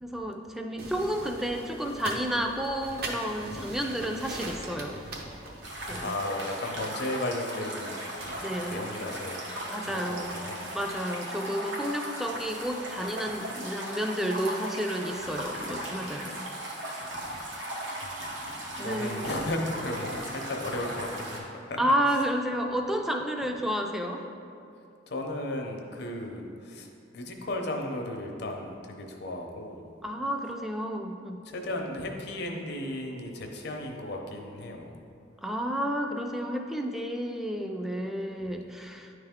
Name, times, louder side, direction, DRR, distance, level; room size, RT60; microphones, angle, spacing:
voice 1, 0.0-5.0 5.9-6.2 8.4-8.9 9.6-10.4 10.7-16.5 18.8-19.3 21.8-24.2 30.0-31.4 35.4-39.1, equal, ahead, 3 dB, 0.4 m, -31 dB
sound 1, 0.8-6.0, right 2 dB, 55° right, 0.8 m, -40 dB
sound 2, 5.6-21.4, right 1 dB, 85° right, 1.2 m, -37 dB
voice 2, 6.0-8.3 8.7-9.4 9.9-10.7 17.1-17.4 18.0-21.8 25.1-26.9 27.1-29.8 31.5-34.9, left 1 dB, 60° left, 2 dB, 0.7 m, -35 dB
9.7 x 3.3 x 3.6 m, 2.5 s
head